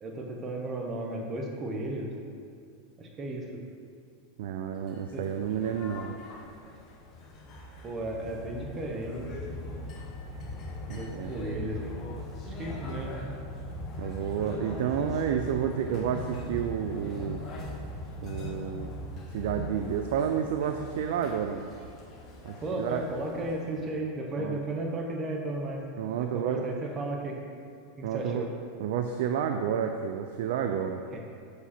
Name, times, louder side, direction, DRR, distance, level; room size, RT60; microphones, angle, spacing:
voice 1, 0.0-2.1 3.0-3.6 5.1-5.2 7.8-9.2 10.9-11.9 12.4-13.2 22.6-25.8 26.2-27.4 28.0-28.5 31.1-31.2, right 1 dB, 25° right, 1 dB, 1.0 m, -34 dB
voice 2, 4.4-6.1 10.9-11.3 14.0-17.4 18.2-18.9 19.3-21.7 22.4-23.1 24.4-24.6 26.0-26.7 28.0-28.5 28.8-31.0, right 8 dB, 70° right, 6 dB, 0.4 m, -30 dB
sound 1, 4.8-24.0, left 1 dB, 35° left, 1.1 m, -40 dB
6.7 x 4.9 x 4.4 m, 2.3 s
supercardioid pair, 135°, 0 cm